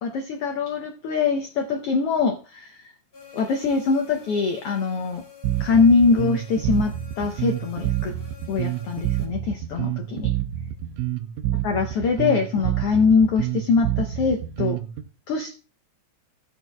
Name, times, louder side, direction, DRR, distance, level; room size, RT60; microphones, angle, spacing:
voice 1, 0.0-2.7 3.3-5.2 5.6-8.1 8.5-10.3 11.6-14.8 15.3-15.6, left 5 dB, 80° left, 4 dB, 1.3 m, -23 dB
sound 1, 3.1-9.3, left 5 dB, 20° left, 4.3 m, -47 dB
Bass guitar, 5.4-15.0, right 13 dB, 80° right, 2.1 m, -27 dB
17.5 x 6.6 x 2.3 m, 0.33 s
omnidirectional pair, 3.6 m